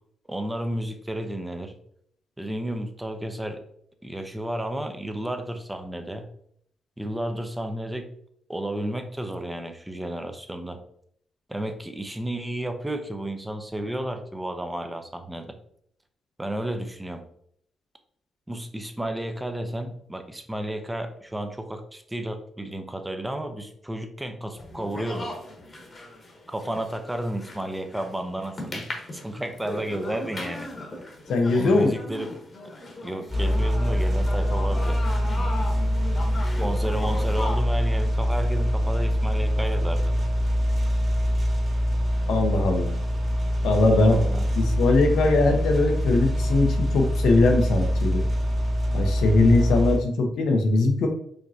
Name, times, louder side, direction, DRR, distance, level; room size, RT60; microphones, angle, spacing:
voice 1, 0.3-1.8 2.4-3.6 4.0-6.2 7.0-8.1 8.5-10.8 11.5-15.6 16.4-17.2 18.5-25.3 26.5-28.9 29.1-30.7 31.5-32.3 33.0-35.0 36.6-40.1 43.9-44.5, right 1 dB, 10° right, 6 dB, 0.6 m, -32 dB
sound 1, 24.6-37.6, left 1 dB, 40° left, 1.1 m, -38 dB
voice 2, 31.3-31.9 42.3-42.9 43.6-44.2 44.6-48.2 48.9-51.1, left 2 dB, 80° left, 4 dB, 0.8 m, -21 dB
sound 2, 33.3-50.0, equal, 40° right, 1.5 m, -24 dB
5.0 x 3.0 x 2.7 m, 0.69 s
cardioid pair, 85°, 0 cm